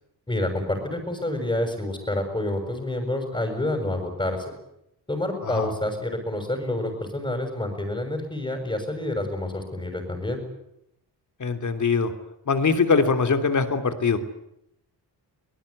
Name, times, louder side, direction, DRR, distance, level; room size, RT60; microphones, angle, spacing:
voice 1, 0.3-4.4 5.1-10.4, left 1 dB, 15° left, 2 dB, 6.5 m, -28 dB
voice 2, 11.4-12.1 12.5-14.2, left 5 dB, 45° left, 8 dB, 3.1 m, -22 dB
24.0 x 19.0 x 9.8 m, 0.82 s
cardioid pair, 100°, 40 cm